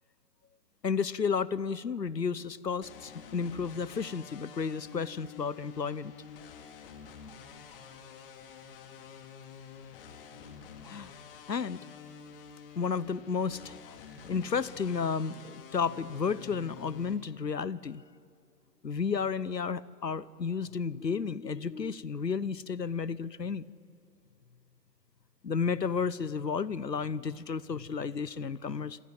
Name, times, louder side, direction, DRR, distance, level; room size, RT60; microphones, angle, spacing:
voice 1, 0.8-6.1 10.8-11.1 11.5-11.8 12.8-14.0 14.2-18.0 18.8-23.6 25.4-29.0, left 5 dB, 85° left, 21 dB, 0.9 m, -32 dB
sound 1, 2.8-17.1, left 6 dB, 35° left, 2.5 m, -49 dB
28.5 x 26.5 x 7.6 m, 2.5 s
figure-of-eight pair, 130°, 48 cm